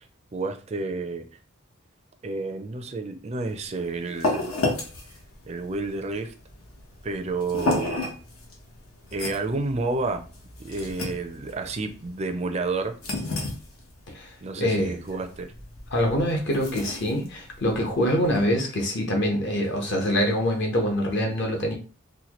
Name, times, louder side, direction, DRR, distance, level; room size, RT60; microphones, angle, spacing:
voice 1, 0.3-1.3 2.2-4.5 5.5-6.3 7.0-8.0 9.1-10.3 10.6-13.0 14.4-15.5, right 3 dB, 30° right, 6 dB, 0.4 m, -30 dB
sound 1, 3.5-18.5, left 2 dB, 80° left, 1.0 m, -33 dB
voice 2, 14.6-15.0 15.9-21.7, equal, 55° left, 2 dB, 1.0 m, -24 dB
4.2 x 2.2 x 3.0 m, 0.35 s
head